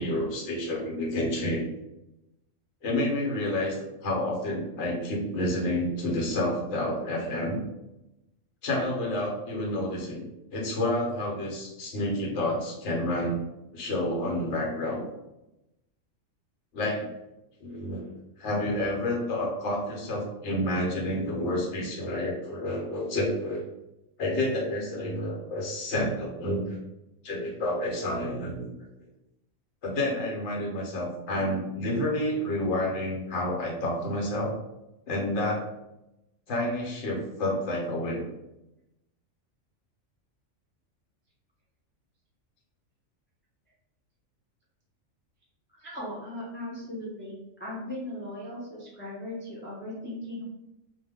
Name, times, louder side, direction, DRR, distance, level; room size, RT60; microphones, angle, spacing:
voice 1, 0.0-1.6 2.8-7.6 8.6-13.4 13.7-15.0 16.7-17.0 17.6-18.1 18.4-23.6 24.2-26.8 27.2-28.7 29.8-34.5 35.1-35.7 36.5-38.3, left 1 dB, 65° left, -1 dB, 1.0 m, -29 dB
voice 2, 45.7-50.4, left 1 dB, 20° left, -6 dB, 0.3 m, -38 dB
2.3 x 2.1 x 3.4 m, 0.91 s
omnidirectional pair, 1.4 m